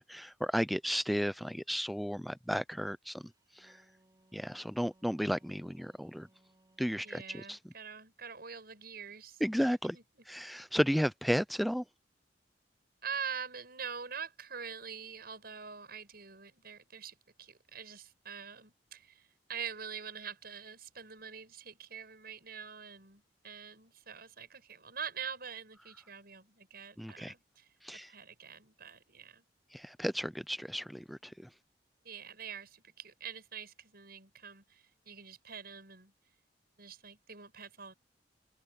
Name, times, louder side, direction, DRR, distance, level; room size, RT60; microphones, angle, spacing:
voice 1, 0.0-3.2 3.6-3.8 4.3-6.3 6.8-7.7 9.4-10.0 10.3-11.8 27.0-27.3 27.8-28.1 29.7-31.5, equal, ahead, 0.4 m, -33 dB
Wind instrument woodwind instrument, 3.3-7.5, right 1 dB, 20° right, 6.3 m, -68 dB
voice 2, 7.0-9.7 9.9-10.0 13.0-27.7 28.1-29.4 32.0-36.1 36.8-37.9, right 7 dB, 60° right, 7.9 m, -45 dB
open air
head